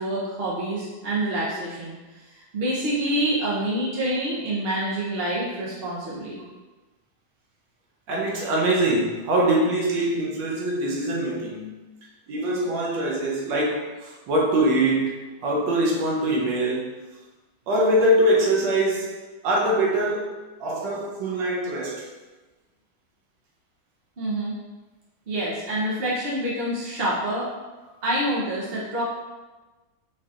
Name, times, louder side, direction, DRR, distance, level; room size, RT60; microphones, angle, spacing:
voice 1, 0.0-1.9 2.5-6.4 24.2-24.5 25.3-27.5 28.0-29.0, right 1 dB, 60° right, -6 dB, 0.6 m, -27 dB
voice 2, 8.1-11.7 12.3-16.9 17.7-19.1 19.4-20.3 20.6-22.0, right 1 dB, 85° right, -3 dB, 1.5 m, -23 dB
4.7 x 2.7 x 2.4 m, 1.2 s
omnidirectional pair, 2.0 m